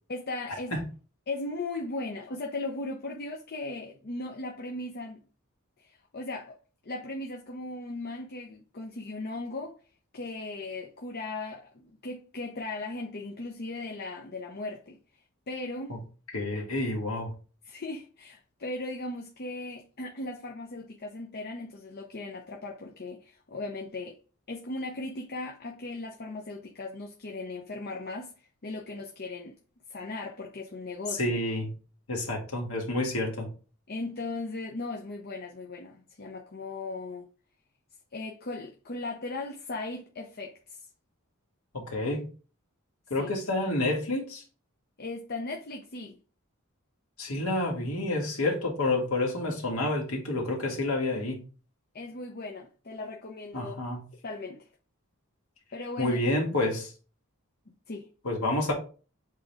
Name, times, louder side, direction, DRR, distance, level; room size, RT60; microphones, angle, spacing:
voice 1, 0.1-0.7 1.3-5.2 5.8-6.6 6.8-9.8 10.1-15.0 15.5-16.0 17.6-24.2 24.5-29.6 29.9-31.4 33.9-37.3 38.1-40.8 43.2-43.3 45.0-46.2 51.9-53.7 54.2-54.7 55.7-56.2 57.9-58.1, left 2 dB, 45° left, 0.8 m, -37 dB
voice 2, 16.3-17.3 31.2-31.7 32.1-33.5 41.9-42.2 43.1-44.4 47.2-51.4 53.5-54.0 56.0-56.9 58.2-58.7, left 2 dB, 75° left, 2.3 m, -29 dB
7.7 x 3.9 x 3.5 m
head